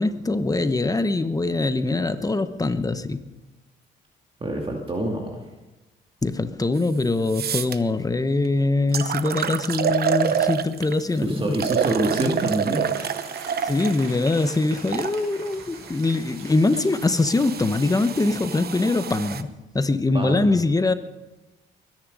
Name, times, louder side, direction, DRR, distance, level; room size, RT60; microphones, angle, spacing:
voice 1, 0.0-3.2 6.2-11.6 13.6-20.9, left 2 dB, 20° left, 1.0 m, -23 dB
voice 2, 4.4-5.4 11.2-12.9 20.1-20.5, right 1 dB, 25° right, 2.3 m, -26 dB
sound 1, 6.8-6.9 7.3-7.8 8.4-8.5 8.9-11.0 11.5-15.2 16.0-19.4, right 8 dB, 50° right, 0.9 m, -28 dB
sound 2, 12.9-19.3, right 4 dB, 85° right, 6.1 m, -44 dB
22.5 x 10.5 x 5.3 m
cardioid pair, 90°, 20 cm